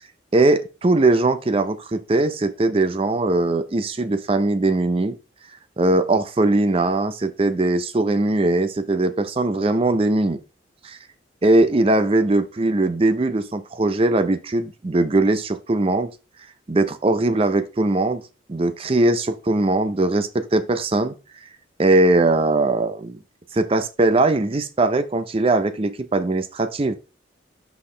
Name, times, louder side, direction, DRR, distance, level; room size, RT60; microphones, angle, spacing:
voice 1, 0.3-5.2 5.8-10.4 10.8-11.0 11.4-16.1 16.7-18.2 18.5-21.1 21.8-23.2 23.5-26.9, right 2 dB, 30° right, 0.5 m, -20 dB
6.3 x 5.7 x 3.2 m
head